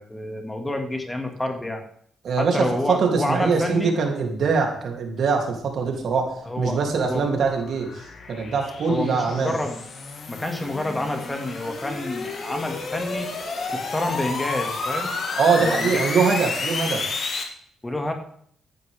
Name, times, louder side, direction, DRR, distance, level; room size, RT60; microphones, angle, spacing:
voice 1, 0.0-1.8 2.4-4.0 6.4-7.3 8.9-9.8 10.3-13.3 13.7-15.2 15.6-16.0 17.8-18.1, left 1 dB, 15° left, 4 dB, 2.1 m, -28 dB
voice 2, 2.2-9.5 15.4-17.1, right 5 dB, 60° right, 2 dB, 3.0 m, -23 dB
sound 1, 6.3-17.4, left 4 dB, 50° left, 2.5 m, -31 dB
14.5 x 10.5 x 3.6 m, 0.63 s
cardioid pair, 90°, 0 cm